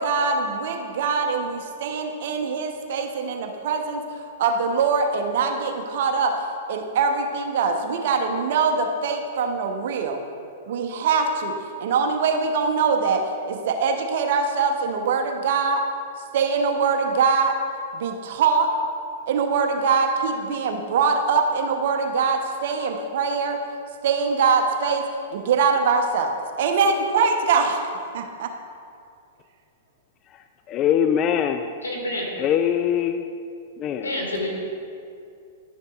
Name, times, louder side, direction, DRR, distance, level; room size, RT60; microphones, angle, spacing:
voice 1, 0.0-4.0 4.4-6.3 6.7-10.2 10.7-11.5 11.8-15.8 16.3-17.6 17.9-18.7 19.3-23.6 24.0-25.0 25.3-27.8 28.1-28.5, right 5 dB, 60° right, 4 dB, 0.9 m, -23 dB
voice 2, 30.7-31.6 32.4-33.2 33.8-34.1, left 9 dB, 35° left, 7 dB, 0.3 m, -22 dB
voice 3, 31.8-32.3 34.0-34.5, left 1 dB, 90° left, -1 dB, 1.8 m, -28 dB
11.0 x 6.4 x 2.4 m, 2.4 s
hypercardioid pair, 110°, 0 cm